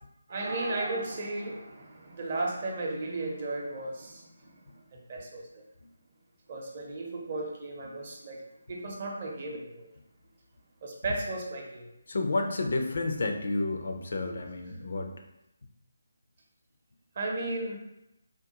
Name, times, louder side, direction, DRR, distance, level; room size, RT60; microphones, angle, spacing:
voice 1, 0.3-4.5 4.9-5.4 6.5-8.4 8.7-9.8 10.8-11.9 17.2-17.8, right 2 dB, 40° right, -1 dB, 0.6 m, -35 dB
voice 2, 12.1-15.2, left 2 dB, 50° left, 4 dB, 0.4 m, -31 dB
3.6 x 2.1 x 2.8 m, 0.88 s
figure-of-eight pair, 150°, 0 cm